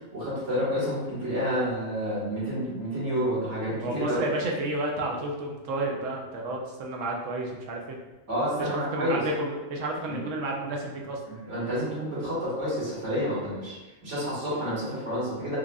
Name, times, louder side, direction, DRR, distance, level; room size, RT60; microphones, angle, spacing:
voice 1, 0.1-4.2 8.3-9.2 10.1-10.2 11.3-13.7 14.0-15.6, equal, 70° right, -9 dB, 1.9 m, -29 dB
voice 2, 3.7-8.0 8.6-11.2, right 2 dB, 85° right, 0 dB, 1.0 m, -31 dB
4.7 x 2.5 x 2.3 m, 1.1 s
omnidirectional pair, 1.3 m